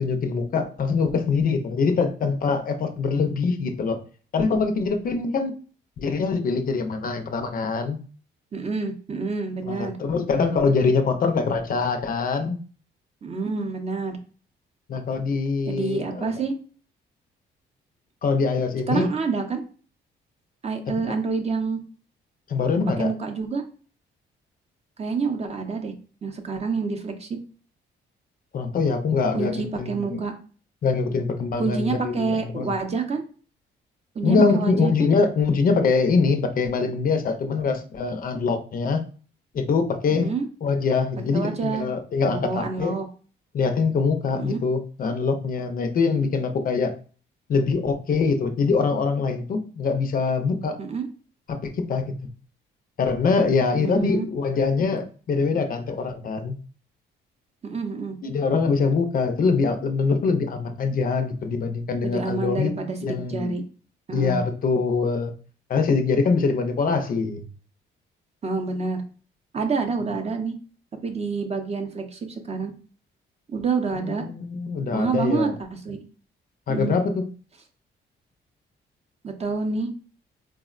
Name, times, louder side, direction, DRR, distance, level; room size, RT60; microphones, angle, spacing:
voice 1, 0.0-4.0 4.3-5.5 6.0-8.0 9.7-12.6 14.9-16.3 18.2-19.1 21.0-21.2 22.5-23.1 28.5-30.2 30.8-32.7 34.2-39.0 39.5-40.3 40.6-42.9 43.5-46.9 47.5-50.8 51.5-52.0 53.0-56.6 58.2-63.6 64.1-65.3 65.7-67.4 74.2-75.5 76.7-77.2, left 4 dB, 45° left, 7 dB, 0.4 m, -23 dB
voice 2, 8.5-10.0 13.2-14.2 15.7-16.5 18.9-19.6 20.6-21.8 23.0-23.6 25.0-25.9 26.2-27.4 29.3-30.3 31.6-33.2 34.1-35.1 40.1-40.5 41.2-41.9 42.2-43.1 44.4-44.6 50.8-51.1 53.7-54.3 57.6-58.2 62.0-63.6 64.1-64.4 68.4-69.0 69.5-70.5 71.0-72.7 73.5-74.2 74.9-76.0 76.7-77.0 79.2-79.9, right 4 dB, 35° right, 4 dB, 0.5 m, -27 dB
3.5 x 2.0 x 2.4 m, 0.39 s
cardioid pair, 90°, 20 cm